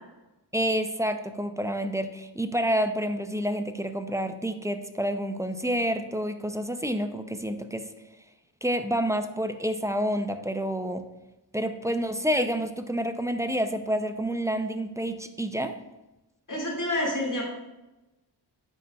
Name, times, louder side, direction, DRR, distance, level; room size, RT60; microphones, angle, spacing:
voice 1, 0.5-7.9 8.6-11.0 11.5-15.7, equal, 10° right, 8 dB, 0.4 m, -28 dB
voice 2, 16.5-17.4, left 1 dB, 45° left, -3 dB, 2.0 m, -28 dB
10.0 x 4.1 x 2.3 m, 1.0 s
wide cardioid pair, 65°, 44 cm